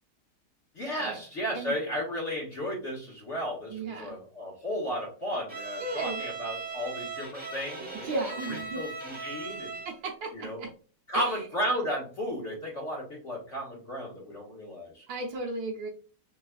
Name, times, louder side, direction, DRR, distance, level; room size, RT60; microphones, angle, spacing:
voice 1, 0.7-8.1 8.5-9.8 10.3-10.6 11.1-15.0, equal, 40° left, -4 dB, 1.6 m, -34 dB
voice 2, 3.7-4.1 5.8-6.2 8.0-8.8 9.8-10.7 11.1-11.3 15.1-15.9, right 3 dB, 70° right, 0 dB, 1.4 m, -35 dB
Bowed string instrument, 5.5-10.0, right 4 dB, 10° right, 0.5 m, -38 dB
4.0 x 3.3 x 2.3 m, 0.39 s
omnidirectional pair, 2.3 m